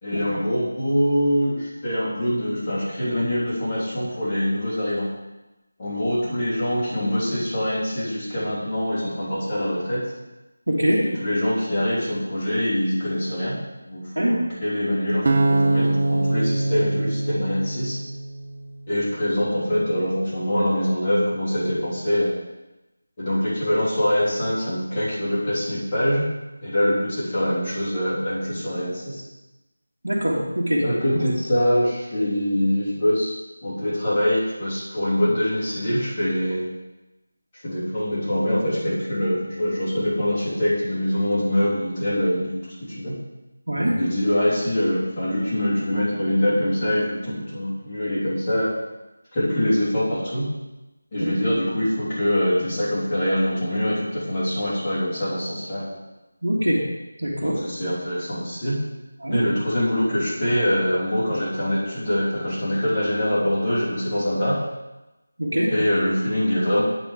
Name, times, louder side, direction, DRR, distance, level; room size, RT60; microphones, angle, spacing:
voice 1, 0.0-5.1 5.8-10.0 11.0-13.6 13.8-18.0 18.9-22.3 23.2-26.3 26.6-29.3 30.8-33.3 33.6-36.7 37.6-43.1 43.9-48.7 49.3-50.5 51.1-55.9 57.4-58.8 59.3-64.6 65.7-66.8, equal, 20° left, -10 dB, 3.2 m, -24 dB
voice 2, 10.7-11.0 14.2-14.3 30.0-30.9 31.1-31.2 43.7-44.0 51.2-51.3 56.4-56.8 57.2-57.6 59.2-59.4 65.4-65.7, equal, 80° right, -6 dB, 1.9 m, -22 dB
sound 1, 15.3-18.4, right 2 dB, 45° right, 0.7 m, -22 dB
8.9 x 5.4 x 5.1 m, 1.0 s
figure-of-eight pair, 165°, 0 cm